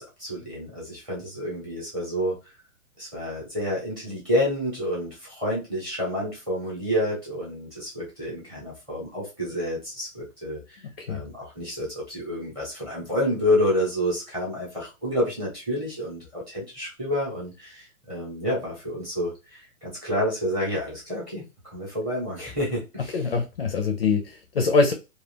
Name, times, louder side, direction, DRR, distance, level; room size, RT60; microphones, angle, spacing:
voice 1, 0.0-2.4 3.0-10.8 11.1-23.1, equal, 10° right, -5 dB, 0.8 m, -29 dB
voice 2, 23.1-24.9, left 4 dB, 45° left, 5 dB, 0.4 m, -23 dB
2.4 x 2.3 x 3.3 m, 0.27 s
hypercardioid pair, 165°, 41 cm